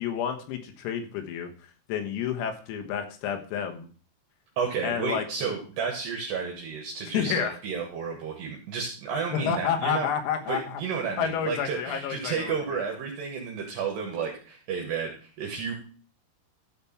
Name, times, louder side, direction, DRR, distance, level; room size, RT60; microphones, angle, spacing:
voice 1, 0.0-1.5 1.9-3.9 4.8-5.3 7.1-7.6 9.3-10.8 11.2-12.8, left 8 dB, 90° left, 5 dB, 4.0 m, -30 dB
voice 2, 4.6-10.1 10.5-15.7, right 6 dB, 65° right, 1 dB, 3.0 m, -32 dB
12.5 x 4.7 x 5.7 m, 0.39 s
omnidirectional pair, 6.0 m